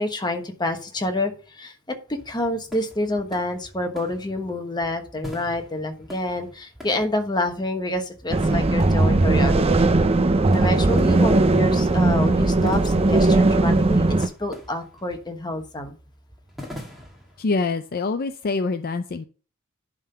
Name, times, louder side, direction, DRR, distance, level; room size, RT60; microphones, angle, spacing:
voice 1, 0.0-9.8 10.5-15.9, left 1 dB, 20° left, 5 dB, 1.2 m, -28 dB
sound 1, 2.1-17.4, left 1 dB, ahead, 2.1 m, -45 dB
sound 2, 8.3-14.3, right 2 dB, 30° right, 0.6 m, -18 dB
voice 2, 17.4-19.2, left 3 dB, 45° left, 9 dB, 0.5 m, -25 dB
11.0 x 3.8 x 5.6 m, 0.37 s
head